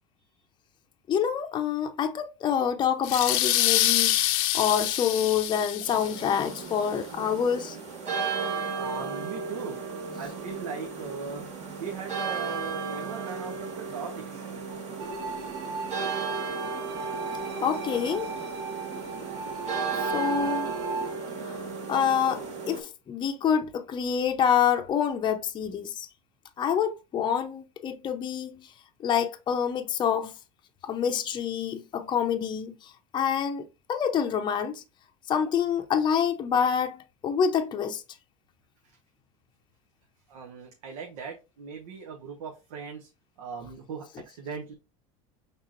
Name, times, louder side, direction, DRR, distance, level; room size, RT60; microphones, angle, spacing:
voice 1, 1.1-4.2 4.5-7.8 17.6-18.3 20.0-20.7 21.4-21.6 21.9-26.1 26.6-28.7 29.0-30.3 30.8-33.6 33.9-34.8 35.3-38.0, left 8 dB, 25° left, 0.6 m, -27 dB
sound 1, 3.0-6.5, left 14 dB, 75° left, 0.5 m, -26 dB
sound 2, 5.8-22.8, right 5 dB, 40° right, 1.5 m, -35 dB
voice 2, 8.7-9.8 10.2-11.4 11.8-14.4 38.8-39.0 40.3-43.1 43.4-44.7, right 5 dB, 90° right, 1.0 m, -39 dB
sound 3, 15.0-21.1, right 4 dB, 65° right, 1.2 m, -35 dB
5.6 x 3.6 x 2.5 m
supercardioid pair, 125°, 18 cm